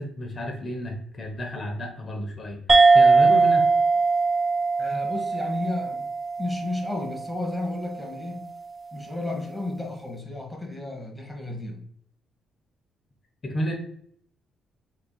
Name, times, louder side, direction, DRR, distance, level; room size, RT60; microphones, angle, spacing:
voice 1, 0.0-2.6 2.9-3.6 13.4-13.7, equal, 40° left, 1 dB, 0.9 m, -31 dB
sound 1, 2.7-7.6, right 4 dB, 25° right, 0.4 m, -20 dB
voice 2, 4.8-6.1 6.4-8.5 8.9-11.8, left 2 dB, 5° left, 0 dB, 1.1 m, -32 dB
3.8 x 3.3 x 2.2 m, 0.65 s
cardioid pair, 90°, 0 cm